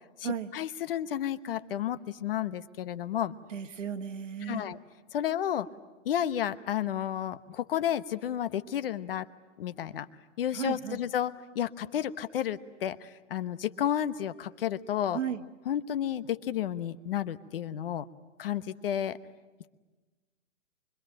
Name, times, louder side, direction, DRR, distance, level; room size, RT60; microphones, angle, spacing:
voice 1, 0.2-3.4 4.4-4.8 5.1-5.7 6.0-9.3 9.6-10.1 10.4-15.2 15.7-18.1 18.4-19.2, left 10 dB, 50° left, 14 dB, 1.1 m, -32 dB
voice 2, 3.5-4.7 10.5-11.0 15.1-15.4, right 8 dB, 75° right, 7 dB, 1.9 m, -35 dB
25.0 x 24.0 x 8.9 m, 1.3 s
hypercardioid pair, 155°, 38 cm